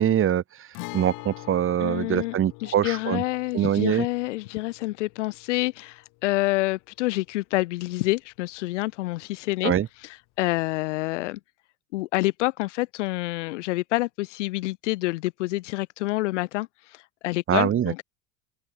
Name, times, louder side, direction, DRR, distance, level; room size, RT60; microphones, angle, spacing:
voice 1, 0.0-3.2 3.5-4.1 9.6-9.9 17.5-17.9, right 10 dB, 35° right, 1.6 m, -24 dB
Guitar, 0.7-8.4 8.6-8.7 10.7-10.9, left 27 dB, 65° left, 5.4 m, -45 dB
voice 2, 1.8-9.7 10.0-11.4 11.9-18.0, left 20 dB, 80° left, 1.4 m, -28 dB
open air
hypercardioid pair, 90°, 35 cm